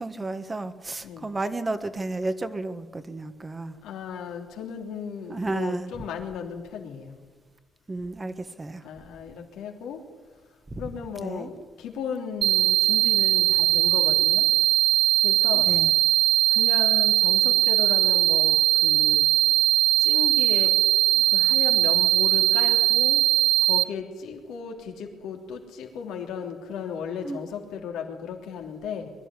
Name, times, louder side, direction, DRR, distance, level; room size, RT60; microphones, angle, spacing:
voice 1, 0.0-3.7 5.3-5.9 7.9-8.9 10.7-10.8 11.2-11.5 15.5-15.9 27.2-27.4, right 2 dB, 25° right, 10 dB, 1.6 m, -32 dB
voice 2, 3.8-7.2 8.8-10.0 10.8-14.5 15.2-15.7 16.5-19.2 20.0-20.7 21.1-23.3 23.6-29.1, left 6 dB, 90° left, 2 dB, 3.2 m, -35 dB
sound 1, 12.4-23.8, right 16 dB, 80° right, 0.5 m, -20 dB
22.5 x 12.5 x 9.9 m, 1.3 s
cardioid pair, 90°, 0 cm